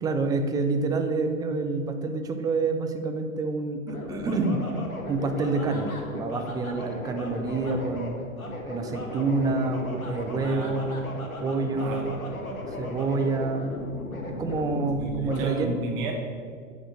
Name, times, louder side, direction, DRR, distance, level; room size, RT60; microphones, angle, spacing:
voice 1, 0.0-4.6 5.1-8.2 8.7-11.0 11.4-12.1 12.8-13.7 14.3-15.7, right 3 dB, 10° right, 7 dB, 0.4 m, -27 dB
sound 1, 3.9-15.5, left 1 dB, 85° left, 1.7 m, -36 dB
voice 2, 10.4-10.8 11.7-12.6 15.0-16.1, right 3 dB, 40° right, 2 dB, 1.3 m, -34 dB
9.8 x 5.3 x 6.3 m, 2.1 s
figure-of-eight pair, 105°, 41 cm